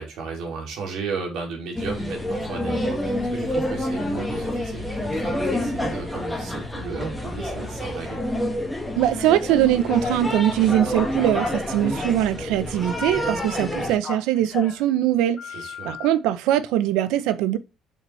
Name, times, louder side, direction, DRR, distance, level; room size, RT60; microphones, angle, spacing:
voice 1, 0.0-8.2 15.4-16.0, right 4 dB, 65° right, 2.8 m, -34 dB
sound 1, 1.7-14.0, left 1 dB, 5° left, 1.8 m, -28 dB
voice 2, 9.0-15.4 15.8-17.6, right 12 dB, 90° right, 0.7 m, -22 dB
Telephone, 9.9-10.2 10.7-12.4 12.6-14.8 15.4-16.1, left 6 dB, 35° left, 2.9 m, -36 dB
7.0 x 5.6 x 3.2 m
cardioid pair, 135°, 0 cm